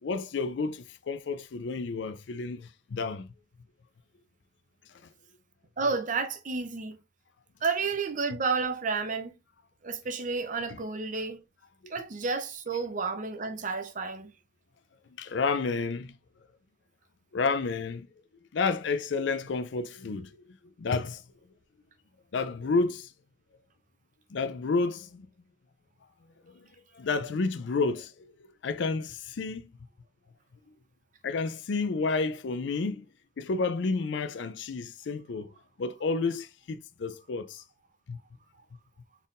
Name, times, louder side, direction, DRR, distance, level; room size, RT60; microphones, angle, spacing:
voice 1, 0.0-3.3 10.7-10.8 11.8-11.9 15.2-16.1 17.3-18.1 18.5-20.4 20.8-21.2 22.3-23.1 24.3-25.3 26.5-26.7 26.9-29.7 31.2-33.0 33.4-35.5 35.8-37.6 38.1-38.2, left 4 dB, 65° left, 0.4 m, -30 dB
voice 2, 5.8-7.0 7.6-9.3 9.8-11.4 11.9-14.3, right 4 dB, 40° right, 0.6 m, -31 dB
4.2 x 3.6 x 2.5 m
head